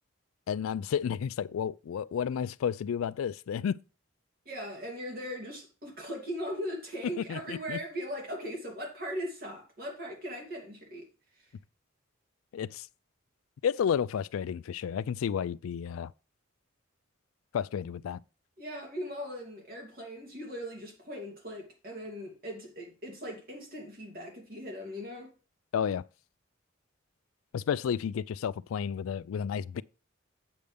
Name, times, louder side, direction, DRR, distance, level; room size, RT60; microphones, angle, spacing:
voice 1, 0.5-3.8 7.2-7.8 12.5-12.9 13.6-16.1 17.5-18.2 25.7-26.0 27.5-29.8, left 7 dB, 80° left, 0.3 m, -31 dB
voice 2, 4.4-11.1 11.4-11.5 18.6-25.3, equal, 45° right, 2.7 m, -39 dB
7.9 x 6.9 x 3.4 m
head